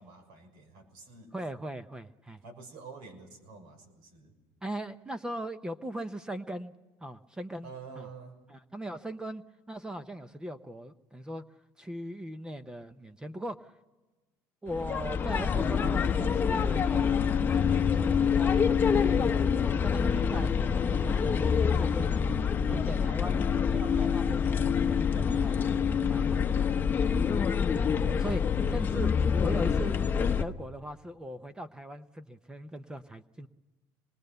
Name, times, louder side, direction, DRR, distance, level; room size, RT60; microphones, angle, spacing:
voice 1, 0.0-1.3 2.4-4.3 7.6-8.4 28.0-29.0, right 4 dB, 75° right, 5 dB, 6.1 m, -48 dB
voice 2, 1.3-2.4 4.6-6.7 7.0-7.7 8.0-8.1 8.5-11.4 11.8-13.7 14.6-17.1 17.5-19.4 19.8-22.1 22.7-26.6 27.0-27.1 28.2-28.4 28.7-29.1 29.4-30.0 30.3-33.5, right 1 dB, 10° right, 11 dB, 0.7 m, -39 dB
sound 1, 14.7-30.4, left 6 dB, 25° left, 0.9 m, -26 dB
26.0 x 21.0 x 6.7 m, 1.2 s
cardioid pair, 140°, 8 cm